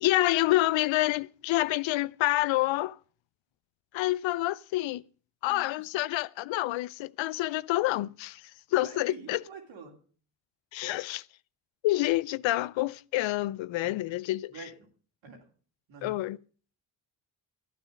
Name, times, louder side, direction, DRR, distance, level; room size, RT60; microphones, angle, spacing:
voice 1, 0.0-3.0 3.9-5.0 5.4-8.4 8.7-9.4 10.7-11.2 11.8-14.5 16.0-16.4, left 17 dB, 80° left, 0.5 m, -28 dB
voice 2, 5.4-5.8 8.8-10.0 13.8-14.0 14.5-14.9 15.2-15.4 15.9-16.2, right 4 dB, 85° right, 3.3 m, -47 dB
12.0 x 9.2 x 6.4 m
supercardioid pair, 55°, 45 cm